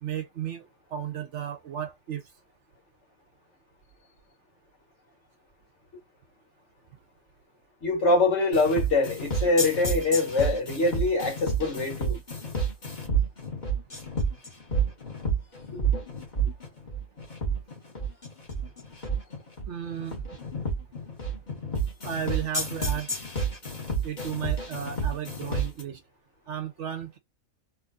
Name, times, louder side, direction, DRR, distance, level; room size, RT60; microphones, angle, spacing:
voice 1, 0.0-2.2 19.7-20.2 22.0-23.1 24.0-26.0 26.5-27.2, right 9 dB, 60° right, 0.9 m, -34 dB
voice 2, 7.8-12.2 15.7-15.8, left 2 dB, 50° left, 2.2 m, -24 dB
sound 1, 8.5-25.8, right 4 dB, 30° left, 1.7 m, -30 dB
3.8 x 2.9 x 2.4 m
omnidirectional pair, 1.5 m